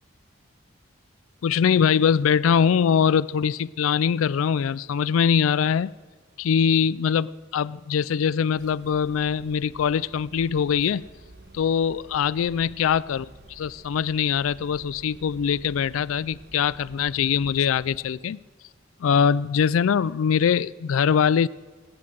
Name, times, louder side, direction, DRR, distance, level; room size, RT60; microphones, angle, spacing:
voice 1, 1.4-5.9 6.4-11.1 11.5-18.4 19.0-21.5, left 7 dB, 85° left, 0.4 m, -22 dB
sound 1, 8.6-18.0, right 1 dB, 55° right, 1.8 m, -49 dB
18.5 x 9.6 x 7.7 m
head